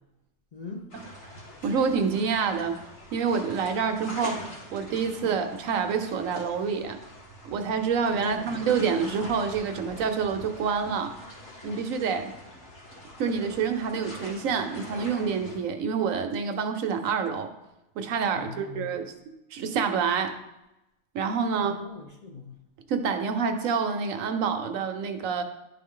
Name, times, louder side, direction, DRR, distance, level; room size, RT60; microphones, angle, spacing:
voice 1, 0.5-0.9 8.0-8.6 18.3-18.9 21.6-22.6, left 4 dB, 40° left, 0 dB, 0.6 m, -41 dB
sound 1, 0.9-15.6, left 1 dB, 70° left, 2.2 m, -44 dB
voice 2, 1.6-2.8 3.1-4.4 4.7-7.0 7.4-11.1 11.6-12.3 13.2-17.5 18.0-19.1 19.5-20.3 21.1-21.8 22.9-25.4, right 6 dB, 75° right, 7 dB, 1.1 m, -27 dB
10.5 x 3.9 x 3.7 m, 0.92 s
omnidirectional pair, 1.4 m